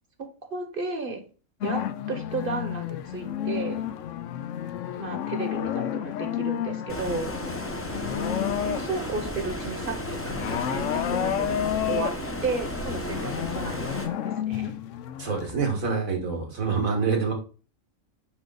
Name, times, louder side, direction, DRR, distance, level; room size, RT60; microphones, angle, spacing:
voice 1, 0.2-1.2 1.6-3.9 5.0-7.3 8.6-12.2 12.4-14.7, right 3 dB, 45° right, 6 dB, 1.2 m, -33 dB
sound 1, 1.6-9.2 9.6-15.9, left 10 dB, 70° left, 0.9 m, -31 dB
Stream, 6.9-14.1, equal, 15° left, 0.6 m, -33 dB
voice 2, 15.2-17.3, right 5 dB, 85° right, 2 dB, 2.2 m, -26 dB
6.1 x 5.2 x 3.8 m, 0.37 s
omnidirectional pair, 1.4 m